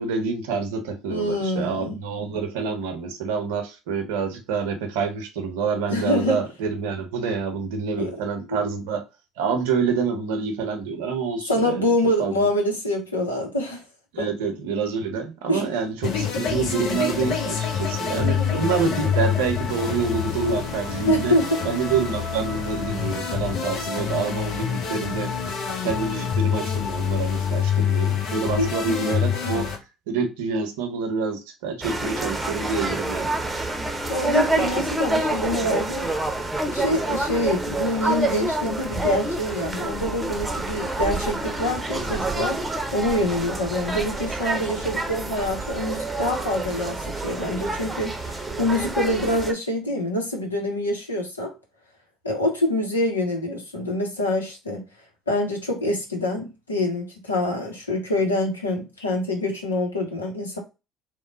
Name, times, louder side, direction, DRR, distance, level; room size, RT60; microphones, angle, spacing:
voice 1, 0.0-9.0 9.4-11.9 12.2-12.5 14.1-21.4 21.6-25.3 25.8-29.7 30.1-33.4, right 5 dB, 70° right, 0.7 m, -27 dB
voice 2, 1.1-2.0 5.9-6.4 8.0-8.2 8.5-8.7 11.5-13.8 14.2-14.3 15.5-15.6 18.1-18.6 21.1-21.6 28.6-29.1 34.1-36.1 36.7-42.6 42.9-51.5 52.2-54.8 55.3-60.6, left 1 dB, 85° left, 0.8 m, -25 dB
sound 1, 16.0-29.8, left 7 dB, 55° left, 0.8 m, -26 dB
sound 2, 31.8-49.5, right 2 dB, 15° right, 0.8 m, -27 dB
3.0 x 2.1 x 3.8 m
figure-of-eight pair, 60°, 0 cm